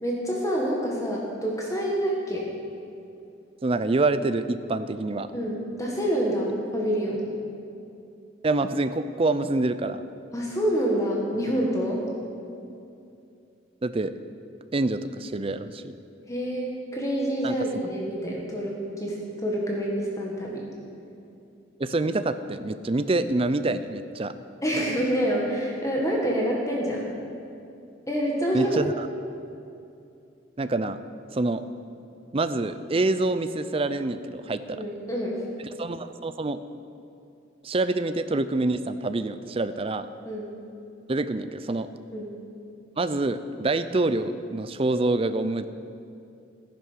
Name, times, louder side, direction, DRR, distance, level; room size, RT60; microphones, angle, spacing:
voice 1, 0.0-2.5 5.3-7.2 10.3-12.0 16.3-20.7 24.6-27.1 28.1-28.7 34.7-35.4 40.2-40.5 42.1-42.3, equal, 15° left, -2 dB, 1.7 m, -27 dB
voice 2, 3.6-5.3 8.4-10.0 13.8-14.1 14.7-15.9 17.4-17.5 21.8-24.3 28.5-29.1 30.6-31.0 31.3-31.6 32.3-34.8 35.8-36.6 37.6-40.1 41.1-41.9 43.0-45.7, right 2 dB, 30° right, 12 dB, 0.5 m, -26 dB
14.5 x 10.5 x 6.4 m, 2.6 s
head